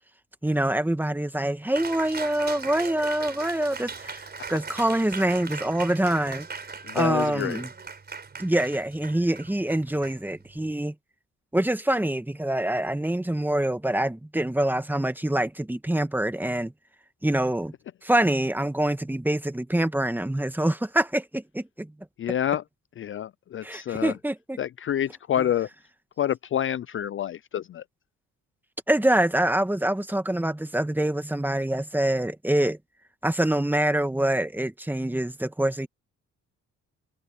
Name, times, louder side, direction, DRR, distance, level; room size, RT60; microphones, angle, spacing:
voice 1, 0.4-6.5 6.9-7.7 8.4-10.9 11.5-16.7 17.2-17.7 18.0-21.9 23.6-24.6 28.9-32.8 33.2-35.9, right 1 dB, 5° right, 1.4 m, -25 dB
Cheering, 1.8-10.7, right 5 dB, 35° right, 4.7 m, -39 dB
voice 2, 6.8-7.6 22.2-22.6 23.0-24.1 24.6-25.7 26.2-27.8, left 10 dB, 45° left, 0.4 m, -28 dB
cardioid pair, 90°, 30 cm